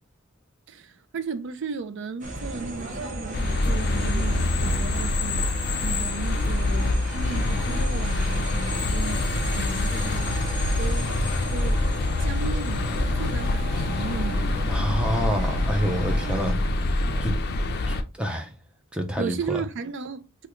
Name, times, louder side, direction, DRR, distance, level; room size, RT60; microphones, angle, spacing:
voice 1, 0.7-10.4 10.8-11.1 11.5-14.8 16.4-16.7 19.2-20.5, right 5 dB, 60° right, 0.4 m, -35 dB
sound 1, 2.2-16.5, right 1 dB, 40° right, 0.8 m, -36 dB
sound 2, 3.3-18.0, left 2 dB, 50° left, 0.4 m, -25 dB
voice 2, 14.7-16.6 17.2-17.4 17.9-18.5 18.9-19.6, equal, 5° right, 0.5 m, -27 dB
3.4 x 2.2 x 2.9 m
head